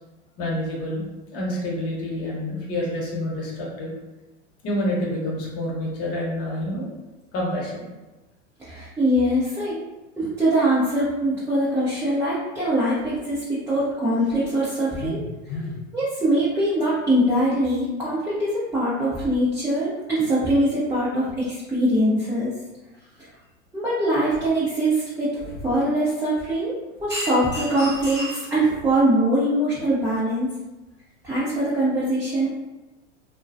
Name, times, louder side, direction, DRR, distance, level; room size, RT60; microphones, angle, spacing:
voice 1, 0.4-1.0 1.3-3.9 4.6-7.0 7.3-7.9 15.0-15.8, left 1 dB, 40° left, -3 dB, 0.9 m, -28 dB
voice 2, 8.6-9.8 10.2-15.2 15.5-15.6 15.9-22.5 23.7-26.7 27.0-30.5 31.2-32.5, right 1 dB, 10° right, -10 dB, 0.5 m, -22 dB
2.2 x 2.2 x 2.5 m, 1.1 s
hypercardioid pair, 95°, 37 cm